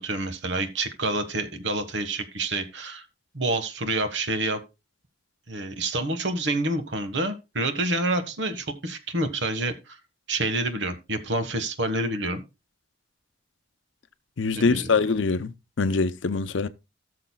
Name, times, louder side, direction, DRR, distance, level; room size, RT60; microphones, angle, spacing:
voice 1, 0.0-3.0 3.3-4.6 5.5-10.0 10.3-12.4 14.5-14.9, right 2 dB, 70° right, 1.5 m, -28 dB
voice 2, 14.4-16.7, left 4 dB, 80° left, 0.7 m, -24 dB
17.5 x 6.6 x 2.3 m
head